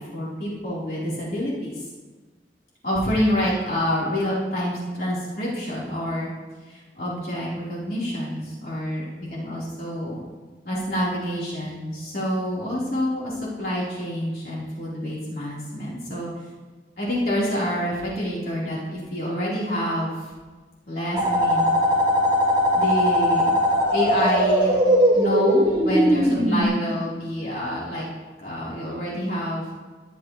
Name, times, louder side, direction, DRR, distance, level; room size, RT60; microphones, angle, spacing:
voice 1, 0.0-1.8 2.8-6.3 6.7-9.0 9.3-10.2 10.6-16.3 17.0-20.3 20.9-21.7 22.7-23.6 23.9-24.8 25.1-28.1 28.4-29.6, equal, 55° left, -7 dB, 4.0 m, -27 dB
sound 1, 21.2-26.6, equal, 30° right, 4.5 m, -20 dB
22.5 x 12.5 x 3.2 m, 1.3 s
head